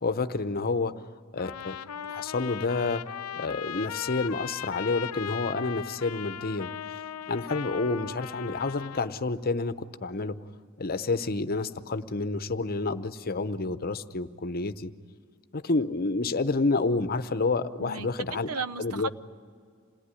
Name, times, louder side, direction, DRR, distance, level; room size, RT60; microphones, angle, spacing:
voice 1, 0.0-1.0 1.3-1.8 2.1-6.7 7.3-10.4 10.8-14.9 15.5-18.5 18.8-19.1, left 3 dB, 45° left, 11 dB, 0.8 m, -29 dB
Trumpet, 1.4-9.1, left 9 dB, 90° left, 0.6 m, -38 dB
voice 2, 17.8-19.1, right 5 dB, 90° right, 14 dB, 0.8 m, -35 dB
27.5 x 18.5 x 9.9 m, 2.1 s
head